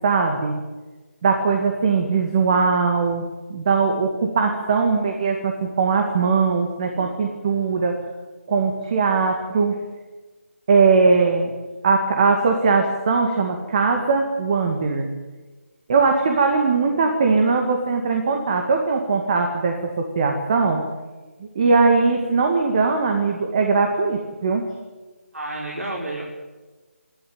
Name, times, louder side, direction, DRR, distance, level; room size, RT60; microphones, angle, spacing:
voice 1, 0.0-0.6 1.2-3.2 3.5-8.0 8.5-9.8 10.7-11.5 11.8-15.1 15.9-20.8 21.6-24.6, right 4 dB, 30° right, 3 dB, 2.2 m, -20 dB
voice 2, 25.3-26.2, right 2 dB, 90° right, -2 dB, 4.9 m, -30 dB
26.5 x 12.5 x 9.5 m, 1.2 s
figure-of-eight pair, 165°, 8 cm